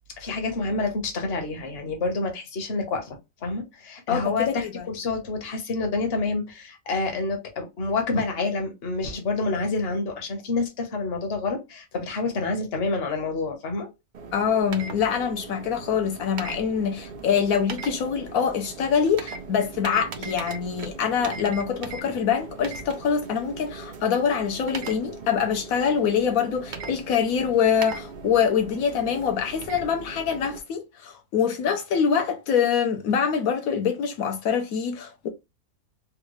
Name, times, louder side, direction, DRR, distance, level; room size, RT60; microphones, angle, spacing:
voice 1, 0.2-13.9, left 3 dB, 50° left, 1.0 m, -28 dB
voice 2, 4.1-4.9 14.3-35.3, left 7 dB, 80° left, 1.1 m, -24 dB
sound 1, 14.1-30.6, right 4 dB, 90° right, 0.4 m, -39 dB
3.5 x 2.3 x 3.0 m
omnidirectional pair, 1.5 m